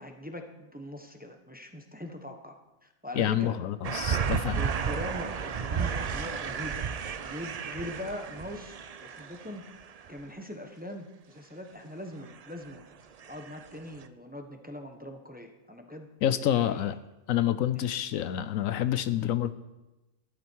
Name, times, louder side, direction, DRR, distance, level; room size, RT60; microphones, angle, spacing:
voice 1, 0.0-3.6 4.5-6.8 7.2-9.7 10.1-12.8 13.3-16.1 16.3-16.9 17.7-17.8, left 1 dB, 5° right, 4 dB, 1.0 m, -41 dB
voice 2, 3.1-4.6 16.2-17.0 17.3-19.5, left 11 dB, 75° left, 13 dB, 1.0 m, -28 dB
sound 1, 3.8-10.2 12.3-12.8 13.2-13.7 14.0-14.1, right 7 dB, 80° right, 0.3 m, -33 dB
13.5 x 11.5 x 4.6 m, 1.0 s
omnidirectional pair, 1.4 m